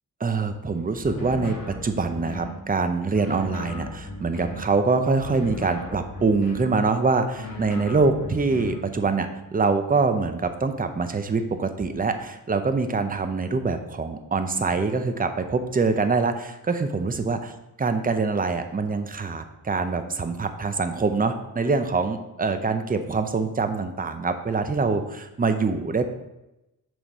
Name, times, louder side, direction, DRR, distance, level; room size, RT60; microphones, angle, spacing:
voice 1, 0.2-17.4 17.8-26.1, right 4 dB, 25° right, 8 dB, 0.6 m, -24 dB
sound 1, 1.0-2.6 3.1-4.7 5.2-6.8 7.3-8.9, left 2 dB, 75° left, 1.5 m, -36 dB
6.2 x 5.1 x 4.1 m, 0.94 s
wide cardioid pair, 100°, 34 cm